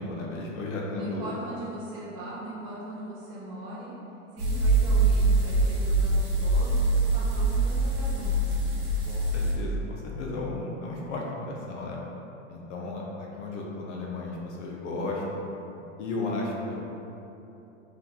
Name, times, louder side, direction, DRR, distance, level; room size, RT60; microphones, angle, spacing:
voice 1, 0.0-1.3 6.0-6.2 9.0-12.0 12.5-15.4 16.0-16.8, left 2 dB, 65° left, -2 dB, 0.9 m, -34 dB
voice 2, 0.9-3.9 4.3-8.7, right 1 dB, 15° right, -9 dB, 0.3 m, -39 dB
sound 1, 4.4-9.5, right 2 dB, 35° right, 1.4 m, -24 dB
3.6 x 3.2 x 4.1 m, 3.0 s
supercardioid pair, 140°, 39 cm